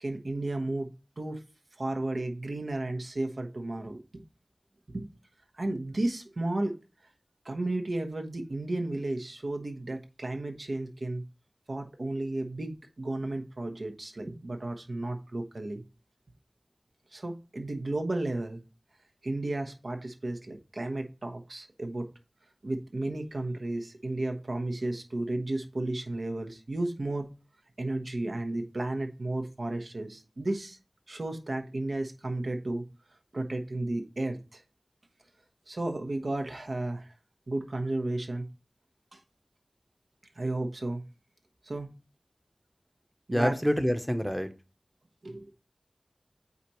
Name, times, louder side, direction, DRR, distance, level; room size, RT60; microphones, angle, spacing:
voice 1, 0.0-1.4 1.8-4.2 4.9-5.1 5.5-6.8 7.4-11.2 11.7-15.8 17.1-18.6 19.2-22.1 22.6-27.3 27.8-30.8 31.1-32.8 33.3-34.6 35.7-37.1 37.5-38.5 39.1-39.2 40.3-41.0 41.6-42.0 43.3-43.5 45.2-45.5, right 2 dB, 85° right, 1.0 m, -33 dB
voice 2, 43.3-44.5, equal, ahead, 0.8 m, -26 dB
8.2 x 4.2 x 3.0 m
wide cardioid pair, 45°, 0 cm